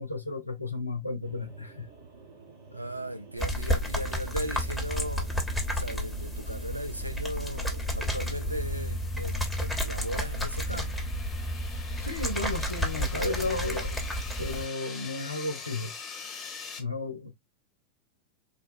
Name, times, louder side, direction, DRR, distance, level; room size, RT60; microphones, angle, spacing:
voice 1, 0.0-1.9 12.0-14.0 14.4-15.9 16.8-17.3, left 2 dB, 85° left, 0.6 m, -33 dB
sound 1, 1.2-8.8, right 4 dB, 55° right, 1.1 m, -51 dB
voice 2, 2.7-5.3 5.7-11.0, right 1 dB, 90° right, 0.4 m, -37 dB
sound 2, 3.4-14.7, equal, ahead, 0.9 m, -31 dB
sound 3, 7.8-16.8, left 5 dB, 25° left, 1.0 m, -44 dB
3.8 x 2.2 x 2.5 m
figure-of-eight pair, 90°, 0 cm